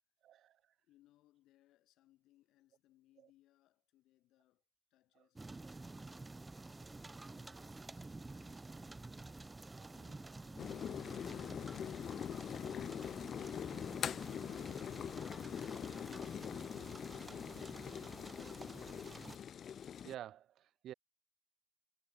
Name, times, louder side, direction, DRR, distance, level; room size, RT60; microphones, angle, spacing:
voice 1, 0.2-0.5 9.8-9.9 20.0-20.9, right 11 dB, 75° right, 1.2 m, -49 dB
voice 2, 0.8-4.6 4.9-6.3 7.1-13.1, left 15 dB, 90° left, 6.0 m, -72 dB
sound 1, 5.4-19.4, right 2 dB, 20° right, 1.1 m, -51 dB
sound 2, 10.6-20.1, left 8 dB, 60° left, 0.4 m, -43 dB
cardioid pair, 90°, 0 cm